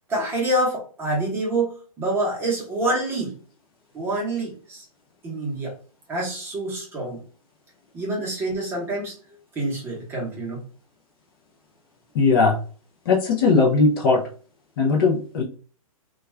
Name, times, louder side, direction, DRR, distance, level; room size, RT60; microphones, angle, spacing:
voice 1, 0.1-3.3 3.9-4.8 5.2-5.7 6.1-7.2 7.9-9.2 9.5-10.6, right 1 dB, 10° right, -3 dB, 0.8 m, -26 dB
voice 2, 12.1-12.6 13.1-14.2 14.8-15.4, left 4 dB, 40° left, -1 dB, 0.5 m, -18 dB
2.3 x 2.3 x 3.1 m, 0.40 s
hypercardioid pair, 150°, 18 cm